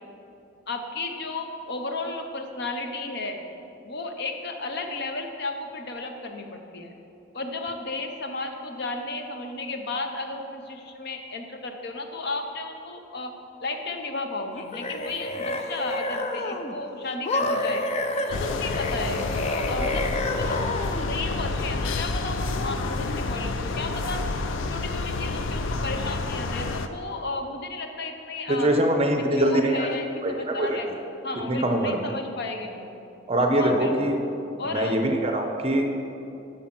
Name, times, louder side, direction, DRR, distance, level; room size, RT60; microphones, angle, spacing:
voice 1, 0.7-3.4 3.8-6.9 7.3-13.3 13.6-17.8 18.2-20.0 20.4-20.7 21.1-24.2 24.7-28.7 29.1-30.9 31.2-32.9 33.5-34.2 34.6-35.0, left 2 dB, 60° left, 5 dB, 0.8 m, -33 dB
sound 1, 14.5-16.7 17.2-21.1, left 2 dB, 35° left, 0.5 m, -29 dB
sound 2, 18.3-26.9, left 3 dB, 85° left, 0.5 m, -29 dB
voice 2, 28.5-29.9 30.2-30.8 31.3-32.0 33.3-34.1 34.6-35.8, right 1 dB, 30° right, 4 dB, 0.8 m, -23 dB
8.2 x 6.4 x 6.0 m, 2.8 s
head